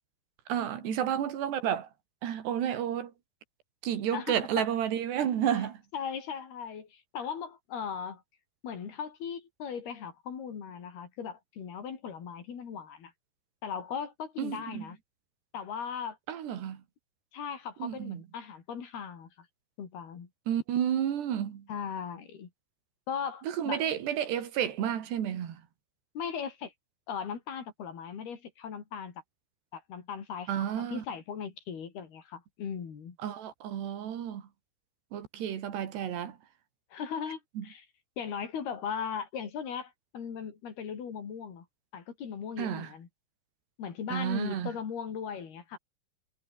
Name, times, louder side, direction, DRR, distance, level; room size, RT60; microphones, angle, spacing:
voice 1, 0.5-1.9 2.2-3.1 3.8-5.8 14.4-14.9 16.3-16.8 17.8-18.2 20.5-21.6 23.5-25.6 30.5-31.0 33.2-34.4 35.1-36.4 37.6-37.7 42.6-42.9 44.1-44.7, right 9 dB, 85° right, 4.7 m, -31 dB
voice 2, 4.1-4.7 5.4-5.7 5.9-8.2 8.6-13.1 13.6-15.0 15.5-16.2 17.3-19.5 19.8-20.3 21.7-22.5 23.1-23.9 26.2-26.7 27.1-29.2 29.7-33.2 36.9-37.9 38.2-41.7 41.9-43.1 43.8-45.8, left 7 dB, 70° left, 5.6 m, -38 dB
omnidirectional pair, 4.7 m